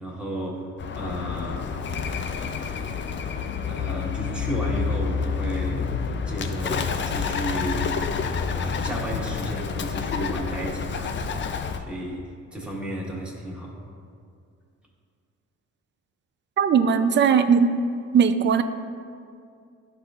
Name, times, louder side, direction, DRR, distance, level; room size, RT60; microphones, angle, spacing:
voice 1, 0.0-1.7 3.6-5.9 6.3-8.0 8.5-13.8, right 1 dB, 5° right, -4 dB, 1.4 m, -33 dB
Bird, 0.8-11.8, left 6 dB, 40° left, 0.4 m, -28 dB
voice 2, 16.6-17.8 18.1-18.6, right 6 dB, 40° right, 10 dB, 0.4 m, -19 dB
11.5 x 3.9 x 2.4 m, 2.3 s
cardioid pair, 90°, 30 cm